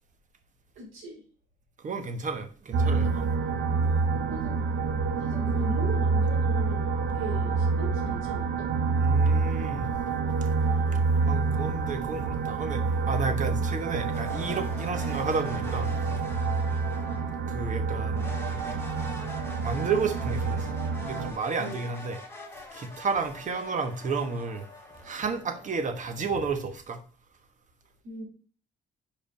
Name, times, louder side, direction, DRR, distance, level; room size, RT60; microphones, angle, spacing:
voice 1, 0.7-1.2 4.3-4.5 5.2-8.7 21.6-21.9 28.0-28.2, right 1 dB, 80° right, 3.2 m, -39 dB
voice 2, 1.8-3.2 9.0-9.9 11.2-15.9 17.5-18.3 19.6-20.8 21.0-22.2 22.7-24.7 25.0-27.0, right 4 dB, 40° right, 1.2 m, -31 dB
sound 1, 2.7-21.3, right 4 dB, 65° right, 0.9 m, -27 dB
sound 2, 14.1-17.5 18.1-26.3, left 2 dB, 15° left, 1.9 m, -44 dB
5.4 x 5.0 x 5.2 m
cardioid pair, 130°, 20 cm